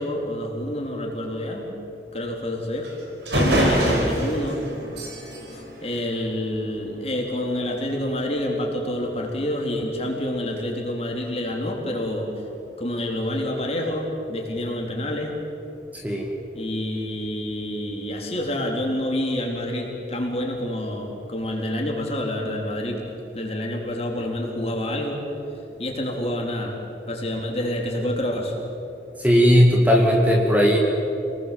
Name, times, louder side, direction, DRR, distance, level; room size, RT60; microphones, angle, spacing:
voice 1, 0.0-1.7 2.1-2.9 3.3-4.6 5.8-12.3 12.8-15.4 16.5-23.0 23.3-25.2 25.8-26.8 27.1-28.6, left 1 dB, 35° left, 0 dB, 3.7 m, -28 dB
sound 1, 2.8-2.9 3.3-6.7, right 1 dB, 80° right, 5.9 m, -25 dB
voice 2, 15.9-16.3 29.2-30.8, equal, 10° right, 0 dB, 2.2 m, -17 dB
27.5 x 20.0 x 7.7 m, 2.9 s
head